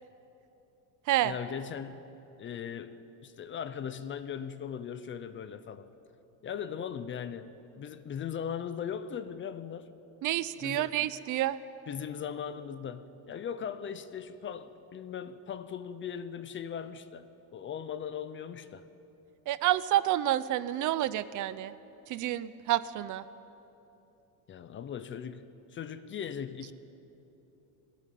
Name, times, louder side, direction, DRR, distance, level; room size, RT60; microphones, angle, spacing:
voice 1, 1.2-2.1 2.4-5.9 6.4-10.0 10.6-11.0 11.9-18.9 24.5-26.7, left 8 dB, 25° left, 13 dB, 0.6 m, -39 dB
voice 2, 10.2-11.6 19.5-21.7 22.1-23.2, right 13 dB, 45° right, 16 dB, 0.6 m, -29 dB
21.0 x 18.5 x 9.2 m, 2.9 s
cardioid pair, 165°, 46 cm